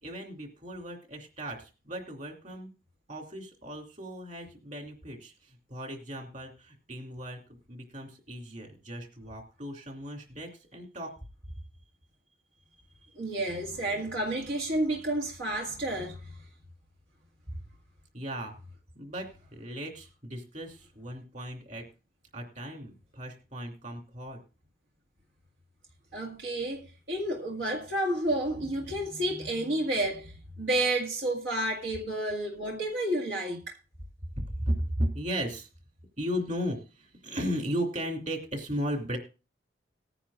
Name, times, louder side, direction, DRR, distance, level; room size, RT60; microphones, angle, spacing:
voice 1, 0.0-2.7 3.1-11.1 13.0-13.1 13.4-13.5 17.5-17.6 18.1-18.5 18.9-21.8 22.3-24.4 34.4-35.7 36.2-39.2, equal, 40° right, 2.7 m, -36 dB
voice 2, 13.2-16.4 26.1-33.8, right 1 dB, 80° right, 1.8 m, -30 dB
19.0 x 9.9 x 2.4 m
head